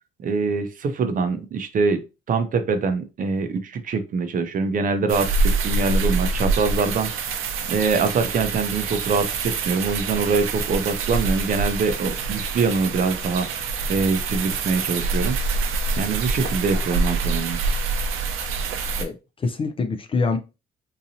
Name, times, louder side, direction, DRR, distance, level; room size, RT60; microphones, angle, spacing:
voice 1, 0.2-2.0 2.3-7.1 7.7-15.4 16.0-17.6, right 4 dB, 40° right, 0.5 m, -24 dB
sound 1, 5.1-19.0, right 4 dB, 80° right, 0.7 m, -26 dB
voice 2, 19.0-20.4, left 4 dB, 25° left, 0.4 m, -25 dB
3.9 x 2.8 x 2.6 m
cardioid pair, 155°, 21 cm